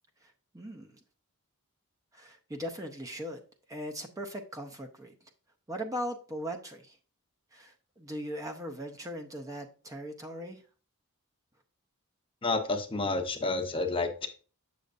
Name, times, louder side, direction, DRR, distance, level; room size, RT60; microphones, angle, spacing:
voice 1, 0.2-1.0 2.1-3.4 3.7-5.3 5.7-7.0 7.5-10.6, equal, 15° right, 0.7 m, -39 dB
voice 2, 12.4-14.3, left 3 dB, 25° left, 0.8 m, -30 dB
7.6 x 6.8 x 2.5 m
head